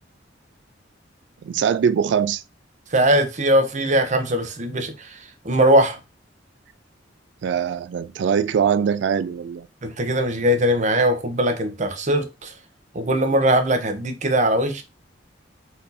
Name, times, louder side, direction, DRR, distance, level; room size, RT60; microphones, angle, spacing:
voice 1, 1.4-2.4 7.4-9.7, right 7 dB, 65° right, 0.3 m, -22 dB
voice 2, 2.9-5.1 5.4-6.0 9.8-12.5 12.9-14.8, right 1 dB, 40° right, 0.8 m, -20 dB
4.3 x 2.7 x 4.0 m
head